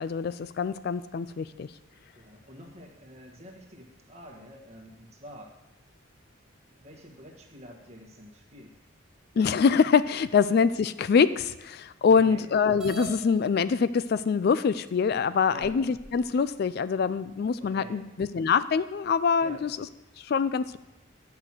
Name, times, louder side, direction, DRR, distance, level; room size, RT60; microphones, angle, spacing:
voice 1, 0.0-1.7 9.4-19.7 20.2-20.8, left 6 dB, 50° left, 14 dB, 0.3 m, -24 dB
voice 2, 2.1-5.5 6.7-8.8 12.1-12.5 15.5-15.8 17.6-18.0 19.4-19.7, equal, 30° right, 1 dB, 1.6 m, -47 dB
sound 1, 12.8-13.2 14.2-14.3 14.9-15.0 15.6-16.3, right 6 dB, ahead, 1.5 m, -40 dB
10.5 x 6.0 x 7.6 m, 0.99 s
head